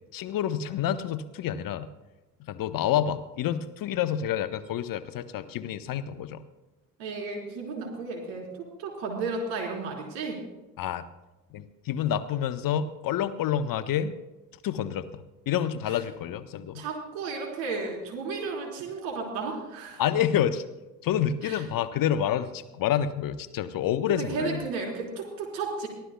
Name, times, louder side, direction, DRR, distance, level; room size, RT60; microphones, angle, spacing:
voice 1, 0.1-1.9 2.5-6.4 10.8-11.1 11.5-14.1 14.6-16.8 20.0-20.6 21.0-24.6, left 10 dB, 40° left, 12 dB, 0.9 m, -28 dB
voice 2, 7.0-10.4 15.9-16.0 16.7-20.0 21.4-21.6 24.1-25.9, right 4 dB, 65° right, 1 dB, 4.1 m, -33 dB
23.5 x 15.0 x 2.3 m, 1.1 s
figure-of-eight pair, 55°, 50 cm